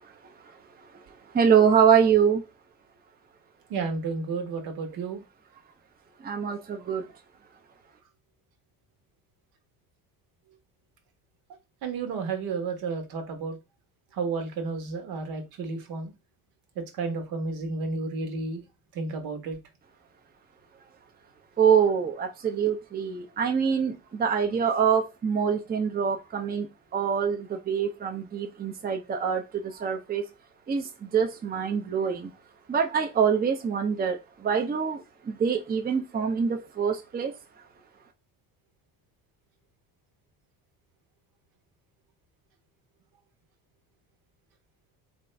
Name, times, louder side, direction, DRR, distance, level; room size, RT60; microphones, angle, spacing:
voice 1, 1.3-2.4 6.2-7.0 21.6-26.7 26.9-30.2 30.7-32.3 32.7-37.3, right 7 dB, 25° right, 0.6 m, -25 dB
voice 2, 3.7-5.2 11.8-13.6 14.1-16.1 16.8-18.6 18.9-19.6, right 4 dB, 70° right, 1.3 m, -32 dB
3.6 x 2.6 x 3.3 m
supercardioid pair, 95°, 37 cm